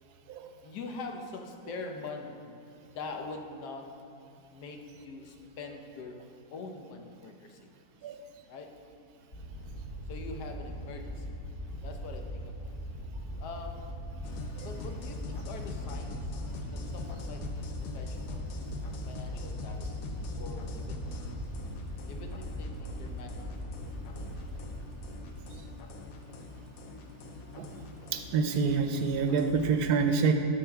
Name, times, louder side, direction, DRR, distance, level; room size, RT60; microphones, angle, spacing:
voice 1, 0.6-2.5 2.9-3.9 4.5-6.2 6.5-7.7 8.5-8.7 10.1-11.4 11.8-12.8 13.4-14.0 14.6-16.4 16.7-18.5 19.0-21.2 22.1-23.8, left 3 dB, 90° left, 4 dB, 1.3 m, -44 dB
sound 1, 9.3-25.9, equal, 40° left, 1.0 m, -40 dB
sound 2, 14.2-29.8, left 3 dB, 70° left, 1.0 m, -42 dB
voice 2, 28.1-30.3, right 5 dB, 85° right, 6 dB, 1.2 m, -27 dB
12.5 x 5.0 x 3.5 m, 2.3 s
omnidirectional pair, 1.7 m